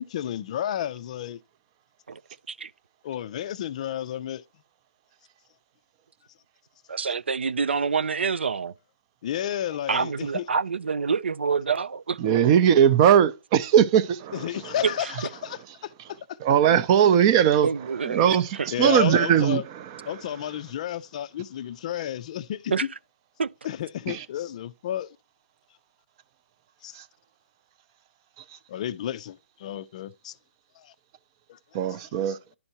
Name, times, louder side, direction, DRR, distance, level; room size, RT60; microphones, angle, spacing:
voice 1, 0.0-1.4 3.0-4.4 9.2-10.4 14.3-15.9 18.7-19.6 20.1-22.7 23.6-25.1 26.8-26.9 28.7-30.3 30.8-30.9 31.5-31.6, left 11 dB, 40° left, 0.4 m, -31 dB
voice 2, 6.9-8.7 9.9-12.2 14.8-15.1 17.6-18.7 22.7-23.0 23.4-23.5, right 5 dB, 85° right, 0.3 m, -27 dB
voice 3, 12.2-14.7 16.4-17.7 18.0-20.2 24.1-24.2 26.9-27.0 31.7-32.4, right 9 dB, 30° right, 0.5 m, -20 dB
11.0 x 4.3 x 2.8 m
hypercardioid pair, 150°, 6 cm